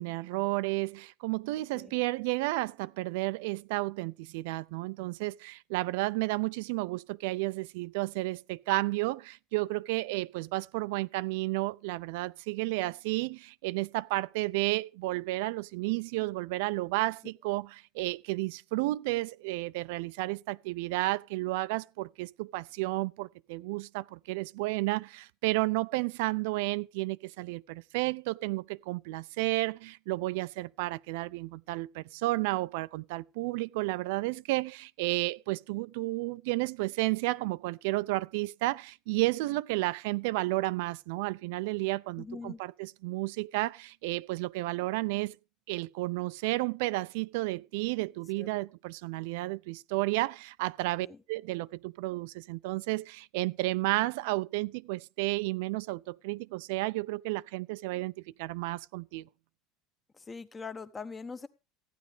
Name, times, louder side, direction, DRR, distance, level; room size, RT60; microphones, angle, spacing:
voice 1, 0.0-17.7 17.9-45.3 45.7-59.3, right 20 dB, 75° right, 0.5 m, -32 dB
voice 2, 42.2-42.6 48.4-48.5 51.0-51.2 60.1-61.5, left 4 dB, 15° left, 0.9 m, -42 dB
15.0 x 10.0 x 3.4 m
cardioid pair, 170°, 0 cm